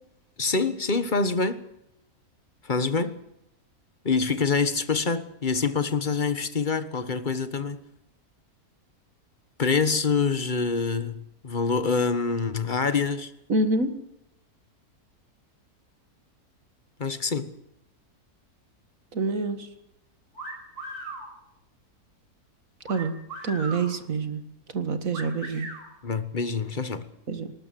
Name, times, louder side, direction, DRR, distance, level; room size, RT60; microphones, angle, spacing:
voice 1, 0.4-1.6 2.6-3.2 4.0-7.8 9.6-13.3 17.0-17.5 26.0-27.1, left 4 dB, 35° left, 1.4 m, -26 dB
voice 2, 13.5-14.0 19.1-19.7 22.9-23.1 23.4-24.4 24.7-25.7 27.3-27.5, right 3 dB, 60° right, 2.2 m, -26 dB
sound 1, 20.3-21.3 22.8-23.9 25.1-25.8, right 2 dB, 80° right, 6.0 m, -38 dB
20.0 x 19.0 x 7.6 m
omnidirectional pair, 1.6 m